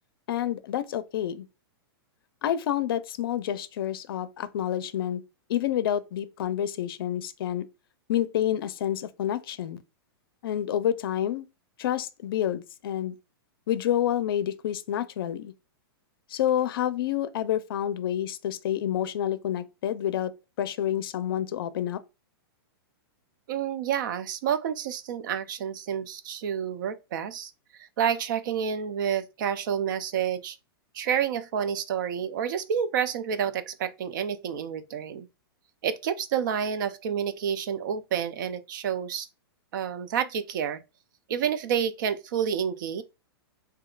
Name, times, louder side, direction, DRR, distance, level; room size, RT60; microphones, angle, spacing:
voice 1, 0.3-1.4 2.4-5.2 5.5-7.6 8.1-9.8 10.4-11.5 11.8-13.1 13.7-15.5 16.3-20.3 20.6-22.0, left 11 dB, 65° left, 0.5 m, -28 dB
voice 2, 23.5-27.5 27.8-30.6 30.9-35.3 35.8-39.3 39.7-40.8 41.3-43.0, right 8 dB, 55° right, 0.4 m, -29 dB
3.6 x 2.7 x 2.4 m
hypercardioid pair, 160°, 13 cm